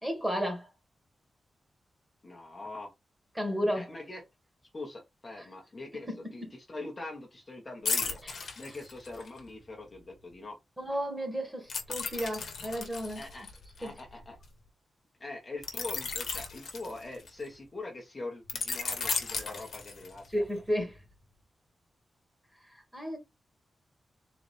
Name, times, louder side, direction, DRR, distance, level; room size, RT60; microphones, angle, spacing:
voice 1, 0.0-0.7 3.4-3.9 5.4-5.5 6.1-6.3 8.2-8.3 10.8-13.2 13.8-13.9 20.3-21.0 22.9-23.2, equal, 10° right, 1.9 m, -32 dB
voice 2, 2.2-2.9 3.7-4.2 4.7-8.2 8.6-10.6 13.1-13.5 13.8-14.4 15.2-20.4, left 2 dB, 25° left, 1.2 m, -43 dB
sound 1, 7.9-9.4 11.7-14.4 15.6-17.5 18.5-20.3 20.8-21.0, left 5 dB, 65° left, 1.3 m, -35 dB
4.1 x 3.4 x 3.3 m
wide cardioid pair, 140°, 0 cm